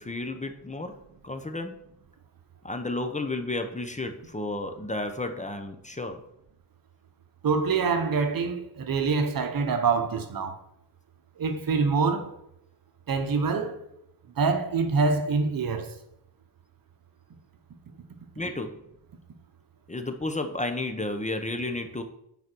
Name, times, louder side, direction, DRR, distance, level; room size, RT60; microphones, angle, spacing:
voice 1, 0.0-1.8 2.6-6.2 18.3-18.8 19.9-22.0, left 2 dB, 20° left, 0.9 m, -32 dB
voice 2, 7.4-10.5 11.4-12.4 13.1-13.8 14.4-16.0, right 4 dB, 60° right, 1.1 m, -25 dB
9.4 x 5.0 x 4.6 m
cardioid pair, 95°, 39 cm